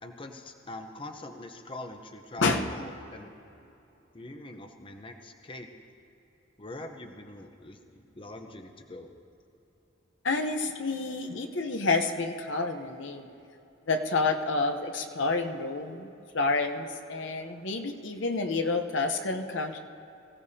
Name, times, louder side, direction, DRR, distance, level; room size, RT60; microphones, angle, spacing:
voice 1, 0.0-3.3 4.1-5.7 6.6-9.2, left 2 dB, 25° left, 5 dB, 0.8 m, -43 dB
voice 2, 10.2-13.3 13.9-16.1 16.3-19.8, left 3 dB, 70° left, 5 dB, 0.9 m, -29 dB
24.0 x 16.0 x 2.8 m, 2.9 s
head